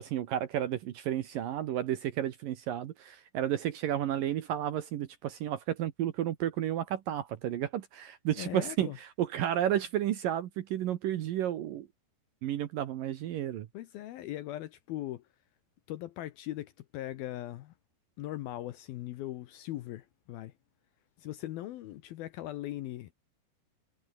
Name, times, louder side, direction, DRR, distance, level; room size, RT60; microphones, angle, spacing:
voice 1, 0.0-11.9 12.4-13.7, right 11 dB, 65° right, 2.3 m, -32 dB
voice 2, 8.4-9.0 13.7-15.2 15.9-17.7 18.2-20.5 21.2-23.1, left 14 dB, 75° left, 2.4 m, -39 dB
omnidirectional pair, 5.1 m